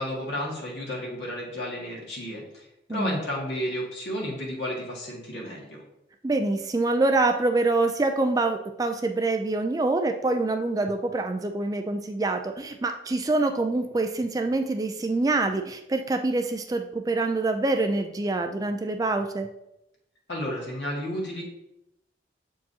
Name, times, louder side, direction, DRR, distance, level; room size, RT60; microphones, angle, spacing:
voice 1, 0.0-5.8 20.3-21.4, equal, 75° left, -3 dB, 1.9 m, -32 dB
voice 2, 6.2-19.5, right 2 dB, 20° right, 6 dB, 0.3 m, -25 dB
7.4 x 4.6 x 2.8 m, 0.85 s
head